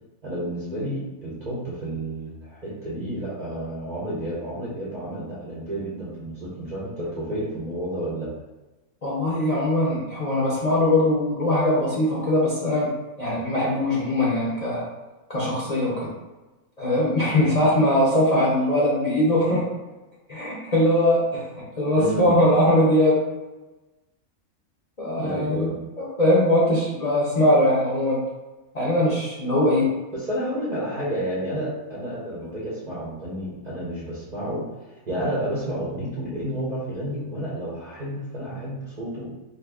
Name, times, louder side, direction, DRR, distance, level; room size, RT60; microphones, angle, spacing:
voice 1, 0.2-8.3 21.9-22.3 25.1-25.7 30.1-34.7 35.1-39.4, right 1 dB, 50° right, -7 dB, 0.5 m, -30 dB
voice 2, 9.0-12.9 13.2-14.8 15.3-16.1 16.8-19.7 20.3-21.5 21.8-23.2 25.0-28.2 28.7-29.9, left 1 dB, 45° left, -7 dB, 0.5 m, -21 dB
2.6 x 2.5 x 3.4 m, 1.1 s
omnidirectional pair, 1.5 m